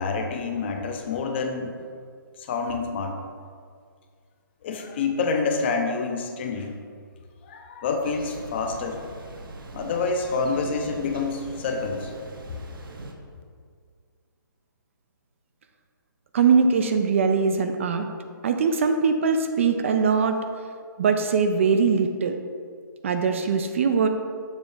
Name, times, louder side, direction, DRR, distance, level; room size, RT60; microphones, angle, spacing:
voice 1, 0.0-1.8 2.4-3.2 4.6-6.8 7.4-9.0 9.7-12.1, left 4 dB, 30° left, 4 dB, 0.6 m, -27 dB
Thunder, 8.0-13.1, right 2 dB, 70° right, 1.0 m, -40 dB
voice 2, 16.3-18.1 18.4-20.3 21.0-22.3 23.0-24.1, right 5 dB, 35° right, 6 dB, 0.4 m, -21 dB
7.1 x 3.2 x 5.4 m, 2.1 s
hypercardioid pair, 160°, 12 cm